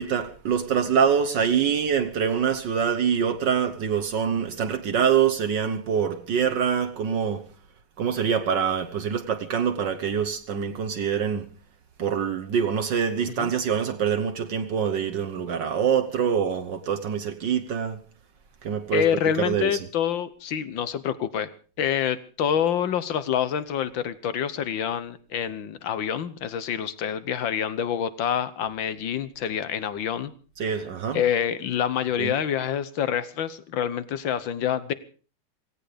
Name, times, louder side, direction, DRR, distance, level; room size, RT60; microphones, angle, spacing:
voice 1, 0.0-7.5 8.0-11.5 12.0-18.0 18.6-19.1 19.4-19.8 30.6-31.2 32.2-32.4, right 7 dB, 60° right, 1.6 m, -25 dB
voice 2, 18.9-21.5 21.8-30.3 31.1-34.9, left 9 dB, 65° left, 1.7 m, -27 dB
17.0 x 16.5 x 5.1 m
omnidirectional pair, 2.4 m